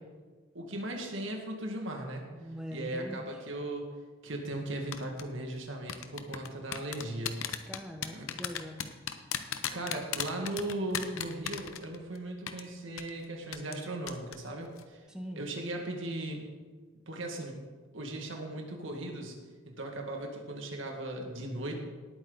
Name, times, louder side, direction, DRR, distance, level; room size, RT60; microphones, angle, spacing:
voice 1, 0.5-2.2 2.7-3.9 4.2-7.6 8.1-8.3 9.7-15.0 15.4-16.5 17.1-17.6 17.9-19.4 19.7-21.7, right 1 dB, 70° right, 2 dB, 2.0 m, -37 dB
voice 2, 2.4-3.3 7.7-8.9 15.1-15.4, equal, 5° right, 3 dB, 0.9 m, -42 dB
sound 1, 4.9-5.2 5.9-12.2 12.5-12.6 13.0-13.1 13.5-13.8 14.1-14.4 14.7-14.8, left 9 dB, 85° left, 0.8 m, -35 dB
18.5 x 8.9 x 4.0 m, 1.4 s
head